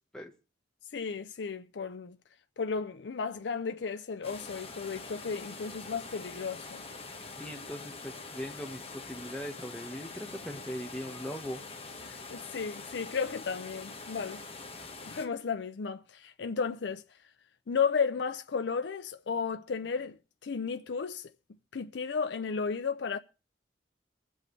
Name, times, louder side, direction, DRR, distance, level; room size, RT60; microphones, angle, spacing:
voice 1, 0.9-2.2 2.6-6.8 12.0-14.4 15.1-17.0 17.7-20.2 20.4-21.3 21.7-23.2, left 5 dB, 75° left, 0.5 m, -33 dB
sound 1, 4.2-15.3, left 3 dB, 30° left, 1.4 m, -44 dB
voice 2, 7.4-11.6, equal, 5° left, 1.3 m, -40 dB
22.5 x 7.8 x 3.2 m
head